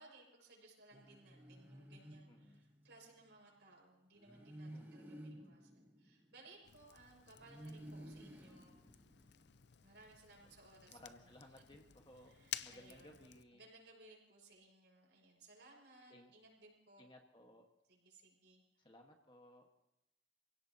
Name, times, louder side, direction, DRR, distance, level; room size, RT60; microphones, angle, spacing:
voice 1, 0.0-8.8 9.8-11.3 12.1-13.2 13.5-17.0 17.9-18.9, right 2 dB, 70° right, -1 dB, 6.0 m, -62 dB
sound 1, 0.9-3.0 4.2-6.9 7.4-9.6, right 1 dB, 10° right, 1.3 m, -54 dB
voice 2, 2.3-2.6 4.7-5.2 10.4-10.5 10.9-13.6 16.1-16.3 17.0-17.7 18.8-19.6, left 1 dB, 25° left, 2 dB, 1.6 m, -60 dB
Fire, 6.6-13.4, left 11 dB, 65° left, 0.5 m, -53 dB
27.0 x 17.0 x 2.9 m, 0.87 s
head